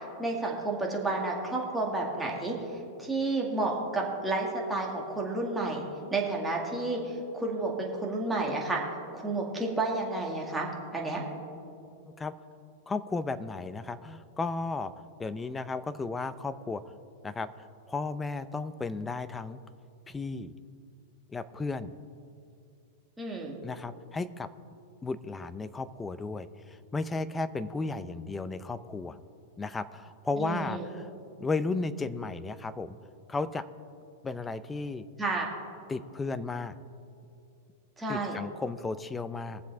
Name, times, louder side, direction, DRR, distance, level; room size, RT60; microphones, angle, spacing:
voice 1, 0.2-2.6 3.0-5.8 6.1-8.8 9.1-11.2 23.2-23.6 30.4-30.9 35.2-35.5 38.0-38.4, right 2 dB, 5° right, -2 dB, 2.0 m, -31 dB
voice 2, 12.9-14.9 15.2-16.8 17.2-19.6 20.1-20.5 21.3-21.9 23.6-24.5 25.0-29.2 29.6-31.1 31.4-33.0 33.3-33.6 34.2-35.1 35.9-36.8 38.1-39.6, left 3 dB, 10° left, 14 dB, 0.5 m, -34 dB
22.0 x 7.4 x 3.5 m, 2.6 s
supercardioid pair, 140°, 0 cm